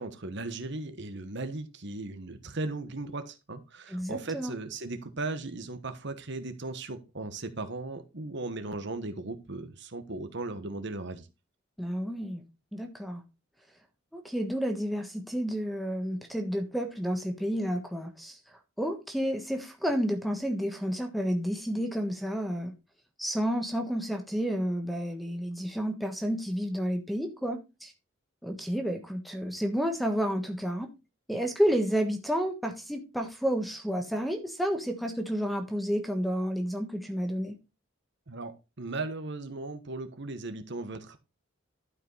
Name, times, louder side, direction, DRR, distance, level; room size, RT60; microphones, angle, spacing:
voice 1, 0.0-11.3 38.3-41.2, right 2 dB, 55° right, 1.3 m, -37 dB
voice 2, 3.9-4.5 11.8-12.4 12.7-13.2 14.1-18.4 18.8-22.7 23.2-27.9 28.4-30.9 31.3-37.6, equal, ahead, 1.4 m, -30 dB
12.0 x 5.4 x 4.1 m
head